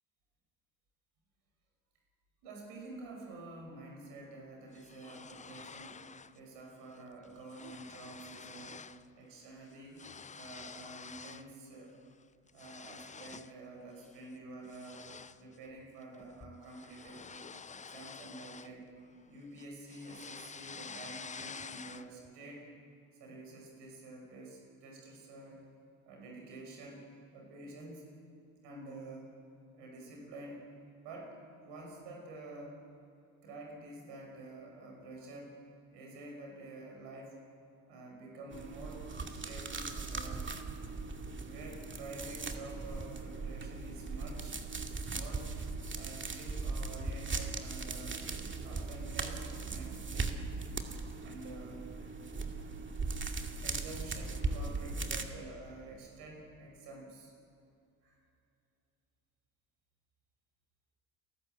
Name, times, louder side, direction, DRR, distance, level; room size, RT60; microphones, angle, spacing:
voice 1, 2.4-6.0 6.3-8.8 9.1-10.0 10.3-12.0 12.5-15.1 15.4-17.3 17.7-18.9 19.2-22.7 23.2-25.6 26.1-27.0 27.3-28.0 28.6-29.3 29.7-30.7 31.0-32.8 33.4-35.6 35.9-37.4 37.9-40.7 41.0-44.6 45.1-45.5 45.9-48.3 48.6-50.4 50.8-52.1 52.5-52.7 53.6-57.3 58.0-58.2, right 2 dB, 70° right, -1 dB, 6.3 m, -49 dB
sound 1, 4.7-6.4 6.7-7.0 7.2-9.1 9.3-11.5 11.9-13.6 14.0-14.3 14.7-19.2 19.6-22.3, left 5 dB, 20° left, 0.6 m, -49 dB
sound 2, 38.5-55.2, right 3 dB, 25° right, 2.3 m, -39 dB
30.0 x 12.0 x 8.0 m, 2.6 s
hypercardioid pair, 55°, 42 cm